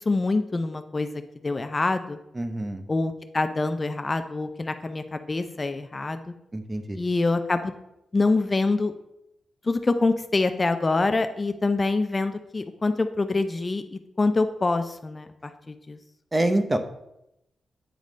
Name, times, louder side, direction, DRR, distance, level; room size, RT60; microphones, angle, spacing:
voice 1, 0.1-1.1 1.4-2.2 2.9-6.2 7.0-7.7 8.1-8.9 9.7-16.0, left 3 dB, 30° left, 9 dB, 0.4 m, -25 dB
voice 2, 2.3-2.8 6.5-7.0 16.3-16.8, right 1 dB, 25° right, 7 dB, 0.7 m, -25 dB
9.0 x 3.1 x 5.0 m, 0.85 s
cardioid pair, 100°, 0 cm